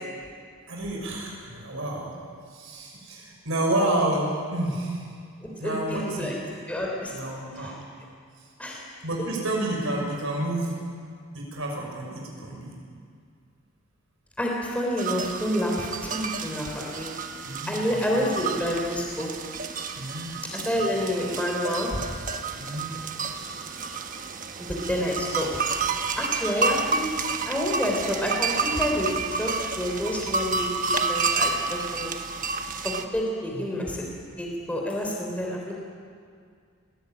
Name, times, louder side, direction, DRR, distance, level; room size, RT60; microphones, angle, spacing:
voice 1, 0.7-2.1 2.5-5.0 5.6-6.3 7.1-7.8 9.0-10.8 11.3-12.8 17.4-18.3 20.0-20.3 22.6-23.0 33.5-33.8, right 1 dB, 65° right, -1 dB, 5.7 m, -29 dB
voice 2, 5.6-6.3 6.7-7.1 7.6-7.7 8.6-8.8 14.4-17.1 17.7-19.3 20.5-22.1 24.6-25.5 26.2-27.1 27.5-32.3 32.8-34.0 34.4-35.7, equal, 5° left, -1 dB, 3.4 m, -28 dB
sound 1, 15.0-33.0, right 4 dB, 40° right, 1.2 m, -30 dB
20.5 x 17.5 x 8.9 m, 2.2 s
head